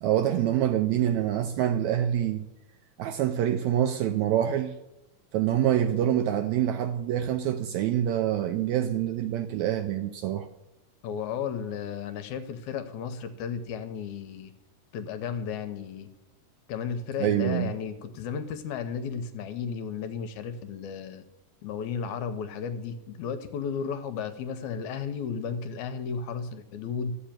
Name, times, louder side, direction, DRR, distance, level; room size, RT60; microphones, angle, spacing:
voice 1, 0.0-2.4 3.0-4.7 5.3-10.5 17.2-17.7, right 11 dB, 80° right, 1.7 m, -26 dB
voice 2, 11.0-14.5 14.9-16.1 16.7-21.2 21.6-27.1, left 6 dB, 75° left, 1.9 m, -34 dB
13.0 x 5.1 x 8.8 m
omnidirectional pair, 3.7 m